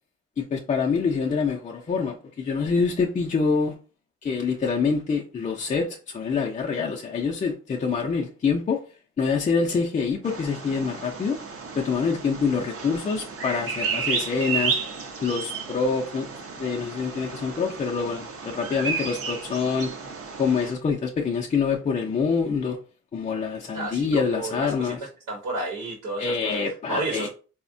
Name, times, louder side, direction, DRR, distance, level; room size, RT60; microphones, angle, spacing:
voice 1, 0.4-3.8 4.2-8.8 9.2-11.4 11.8-14.8 15.2-16.3 16.6-19.9 20.4-22.8 23.1-25.0 26.2-27.3, left 5 dB, 25° left, 0.4 m, -26 dB
Bird vocalization bird call bird song, 10.2-20.7, right 5 dB, 50° right, 0.6 m, -32 dB
voice 2, 23.7-24.9 25.3-26.6 26.9-27.3, right 2 dB, 85° right, 0.9 m, -31 dB
3.4 x 2.1 x 2.5 m
cardioid pair, 90°, 30 cm